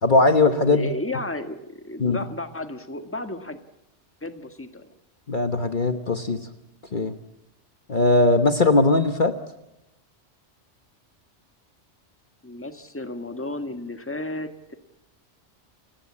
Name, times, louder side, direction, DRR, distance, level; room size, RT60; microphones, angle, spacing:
voice 1, 0.0-0.9 2.0-2.2 5.3-6.5 6.9-7.2 7.9-9.3, left 3 dB, 45° left, 8 dB, 1.3 m, -19 dB
voice 2, 0.6-3.6 4.2-4.9 12.4-14.7, left 2 dB, 10° left, 8 dB, 1.6 m, -33 dB
29.5 x 17.5 x 8.6 m, 0.92 s
omnidirectional pair, 1.2 m